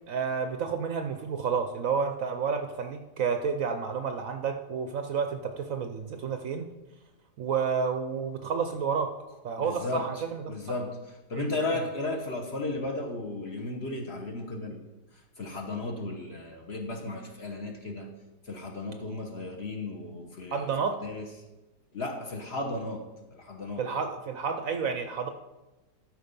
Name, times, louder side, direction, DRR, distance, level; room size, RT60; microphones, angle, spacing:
voice 1, 0.1-6.7 7.4-9.1 9.4-10.8 11.3-11.5 20.5-21.0 23.8-25.3, right 6 dB, 65° right, 6 dB, 0.9 m, -30 dB
voice 2, 9.6-10.2 10.5-14.8 15.1-18.1 18.4-20.7 21.0-21.3 21.9-23.9, left 2 dB, 45° left, 1 dB, 1.2 m, -35 dB
13.0 x 4.6 x 5.3 m, 1.1 s
omnidirectional pair, 1.8 m